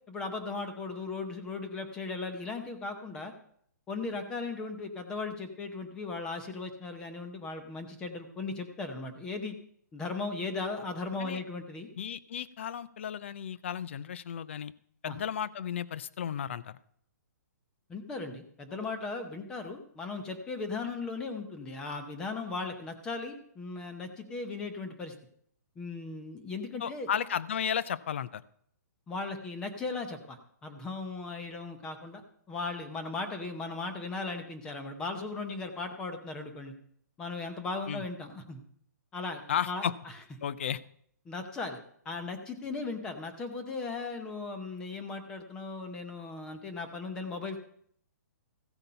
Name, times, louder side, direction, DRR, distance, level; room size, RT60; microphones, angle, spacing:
voice 1, 0.1-3.3 3.9-9.5 9.9-11.9 15.0-15.2 17.9-25.1 25.8-27.1 29.1-36.7 37.2-38.6 39.1-40.1 41.3-47.6, left 3 dB, 10° left, 6 dB, 0.8 m, -37 dB
voice 2, 12.0-14.7 15.0-16.8 26.8-28.4 37.9-38.0 39.5-39.9 40.4-40.8, left 8 dB, 40° left, 18 dB, 0.5 m, -34 dB
15.0 x 8.0 x 5.6 m, 0.66 s
hypercardioid pair, 175°, 10 cm